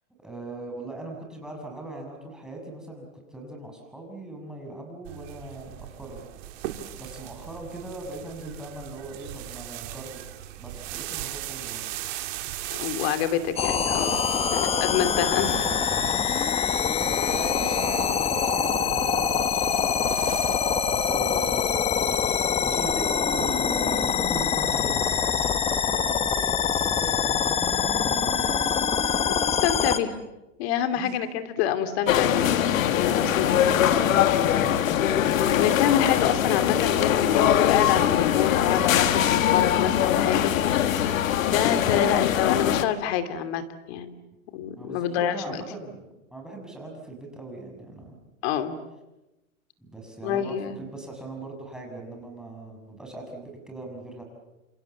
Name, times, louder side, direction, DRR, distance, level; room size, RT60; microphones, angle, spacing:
voice 1, 0.2-6.2 7.0-10.2 10.6-11.9 15.4-15.8 17.0-29.1 31.0-31.2 33.1-35.0 44.8-48.2 49.8-54.2, right 2 dB, ahead, 1 dB, 6.7 m, -40 dB
sound 1, 5.1-24.4, right 13 dB, 50° right, 3.1 m, -39 dB
voice 2, 12.8-15.6 22.5-22.6 29.2-30.2 30.6-32.5 32.9-33.6 35.5-41.1 41.4-44.1 44.5-45.6 48.4-48.8 50.2-50.8, left 9 dB, 50° left, 10 dB, 2.9 m, -27 dB
sound 2, 13.6-30.0, left 7 dB, 15° left, 1.2 m, -24 dB
sound 3, 32.1-42.8, left 10 dB, 70° left, 1.9 m, -22 dB
29.0 x 27.5 x 7.3 m, 1.0 s
hypercardioid pair, 135°, 41 cm